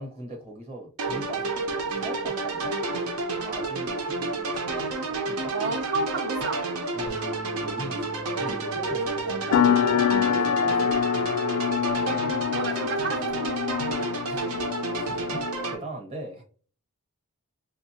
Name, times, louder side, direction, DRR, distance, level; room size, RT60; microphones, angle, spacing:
voice 1, 0.0-3.0 3.4-4.6 5.1-5.5 6.9-7.3 7.6-10.9 13.8-16.4, right 1 dB, 25° right, 1 dB, 0.9 m, -41 dB
sound 1, 1.0-15.7, right 3 dB, 80° right, 0.7 m, -30 dB
voice 2, 5.5-6.6 12.5-13.5, right 3 dB, 50° right, 7 dB, 0.5 m, -31 dB
Bass guitar, 7.1-13.3, left 1 dB, ahead, 0.5 m, -46 dB
sound 2, 9.5-15.7, left 9 dB, 90° left, 0.3 m, -26 dB
6.2 x 2.2 x 2.8 m, 0.43 s
head